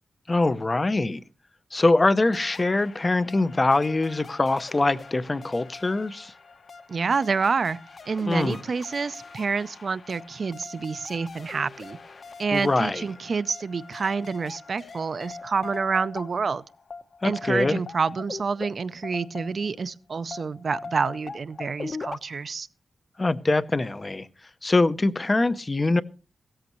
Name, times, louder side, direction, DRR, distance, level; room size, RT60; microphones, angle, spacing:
voice 1, 0.3-1.2 1.7-6.3 8.3-8.6 12.5-13.0 17.2-17.8 23.2-24.3 24.6-26.0, left 2 dB, 20° left, 0.6 m, -23 dB
sound 1, 2.2-19.9 20.3-22.2, left 4 dB, 45° left, 0.9 m, -42 dB
voice 2, 6.9-7.8 8.1-12.0 12.4-16.6 17.2-22.7, right 5 dB, 45° right, 0.5 m, -28 dB
16.5 x 13.5 x 3.0 m
wide cardioid pair, 155°, 0 cm